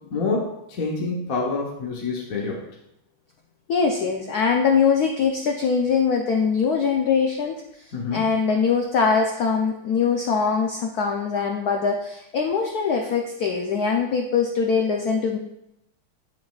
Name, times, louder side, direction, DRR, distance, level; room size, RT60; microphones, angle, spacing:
voice 1, 0.1-0.5 0.8-2.6 7.9-8.2, left 3 dB, 50° left, -3 dB, 1.2 m, -26 dB
voice 2, 3.7-15.4, left 5 dB, 75° left, 2 dB, 0.8 m, -22 dB
8.3 x 7.2 x 2.3 m, 0.84 s
omnidirectional pair, 2.4 m